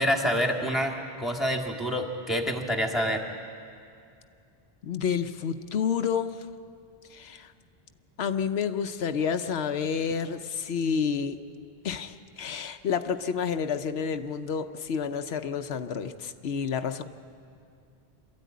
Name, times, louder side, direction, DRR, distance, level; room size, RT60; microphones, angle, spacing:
voice 1, 0.0-3.2, equal, ahead, 2 dB, 1.9 m, -27 dB
voice 2, 4.8-6.5 7.1-7.5 8.2-11.4 11.8-17.0, left 7 dB, 90° left, 9 dB, 1.0 m, -29 dB
25.0 x 13.5 x 9.3 m, 2.5 s
omnidirectional pair, 1.0 m